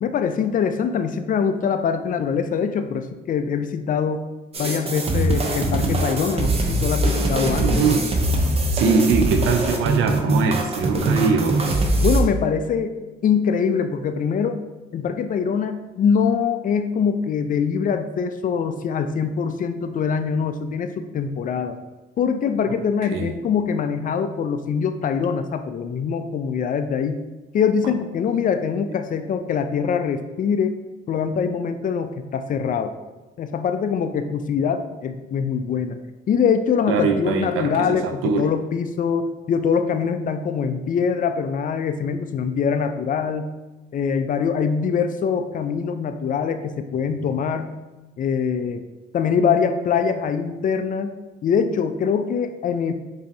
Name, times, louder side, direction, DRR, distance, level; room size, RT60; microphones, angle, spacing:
voice 1, 0.0-4.3 4.6-7.9 12.0-13.0 13.2-14.6 14.9-21.8 22.2-27.2 27.5-30.8 31.1-32.9 33.4-36.0 36.3-43.5 43.9-47.7 48.2-48.8 49.1-51.1 51.4-52.9, left 6 dB, 45° left, 8 dB, 0.4 m, -23 dB
sound 1, 4.5-12.2, right 2 dB, 30° right, 0.6 m, -22 dB
voice 2, 7.6-8.1 8.7-11.6 23.1-23.3 36.9-38.5, right 5 dB, 90° right, 7 dB, 0.5 m, -22 dB
5.1 x 2.7 x 2.7 m, 1.1 s
cardioid pair, 90°, 20 cm